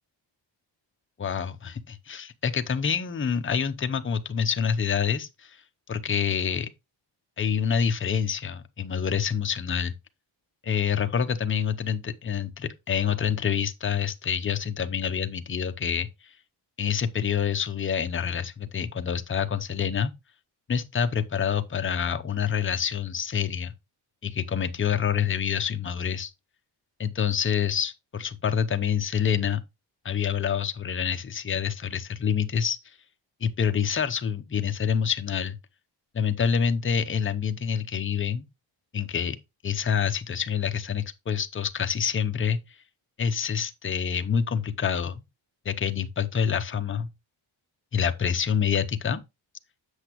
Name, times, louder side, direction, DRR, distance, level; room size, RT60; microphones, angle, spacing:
voice 1, 1.2-5.6 5.9-6.7 7.4-9.9 10.6-16.3 16.8-20.1 20.7-23.7 24.2-26.3 27.0-29.6 30.0-33.0 33.4-35.6 36.1-38.4 38.9-39.4 39.6-42.6 43.2-45.2 45.6-47.1 47.9-49.2, left 7 dB, 25° left, 0.6 m, -27 dB
8.1 x 6.8 x 2.9 m
wide cardioid pair, 180°, 46 cm